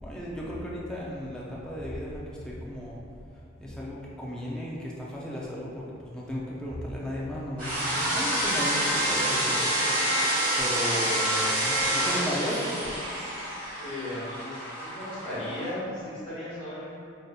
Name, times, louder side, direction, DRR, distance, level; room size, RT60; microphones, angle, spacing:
voice 1, 0.0-3.0 3.6-9.7 10.0-10.1 10.6-13.0, equal, 5° left, -5 dB, 0.4 m, -35 dB
sound 1, 7.6-15.7, right 1 dB, 40° right, 1.1 m, -27 dB
voice 2, 13.7-17.0, left 1 dB, 20° left, -16 dB, 1.3 m, -36 dB
5.0 x 2.6 x 2.3 m, 2.5 s
head